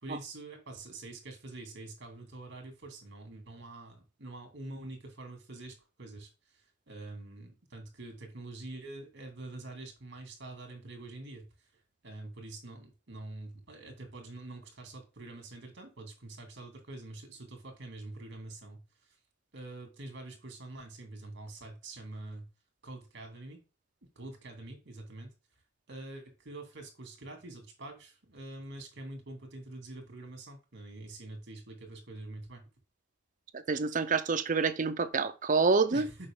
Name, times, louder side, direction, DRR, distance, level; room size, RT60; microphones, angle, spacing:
voice 1, 0.0-11.7 12.0-19.2 19.5-22.5 22.8-23.6 24.2-25.3 25.9-32.7 35.9-36.3, right 2 dB, 60° right, 2.4 m, -46 dB
voice 2, 33.7-36.1, right 4 dB, 40° right, 0.6 m, -27 dB
6.6 x 4.9 x 3.7 m
head